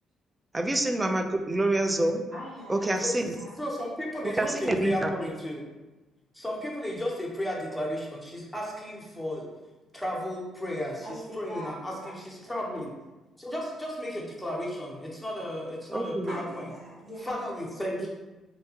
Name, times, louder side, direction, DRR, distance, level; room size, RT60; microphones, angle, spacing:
voice 1, 0.5-2.2 2.7-3.4 4.2-5.1 15.9-16.4 18.0-18.1, right 2 dB, 20° right, 6 dB, 0.3 m, -27 dB
voice 2, 2.3-3.6 11.0-12.1 16.3-17.5, equal, 40° right, -11 dB, 1.2 m, -42 dB
voice 3, 3.6-4.5 4.8-5.7 6.3-9.5 9.9-11.1 11.4-12.9 13.4-16.6 17.2-18.1, equal, 5° left, -4 dB, 0.9 m, -34 dB
2.8 x 2.2 x 2.8 m, 1.1 s
hypercardioid pair, 50°, 0 cm